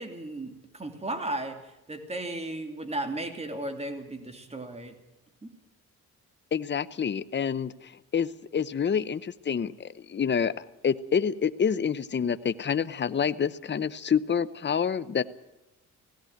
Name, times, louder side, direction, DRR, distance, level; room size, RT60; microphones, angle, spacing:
voice 1, 0.0-4.9 5.4-5.5, right 2 dB, 20° right, 6 dB, 3.0 m, -35 dB
voice 2, 6.5-7.7 8.1-10.5 10.8-15.2, left 7 dB, 30° left, 14 dB, 0.8 m, -27 dB
17.0 x 17.0 x 9.2 m, 0.94 s
cardioid pair, 95°, 34 cm